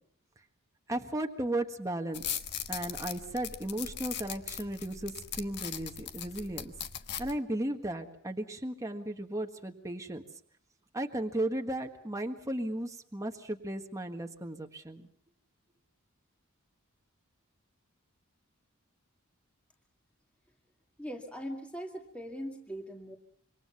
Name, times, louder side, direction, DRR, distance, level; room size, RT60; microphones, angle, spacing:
voice 1, 0.9-2.2 2.7-6.7 7.2-10.2 10.9-15.1, right 1 dB, 15° right, 3 dB, 1.6 m, -35 dB
sound 1, 2.1-7.4, left 9 dB, 55° left, 1.4 m, -39 dB
voice 2, 21.0-23.2, equal, 5° left, 2 dB, 2.1 m, -40 dB
27.0 x 24.5 x 5.7 m, 0.64 s
head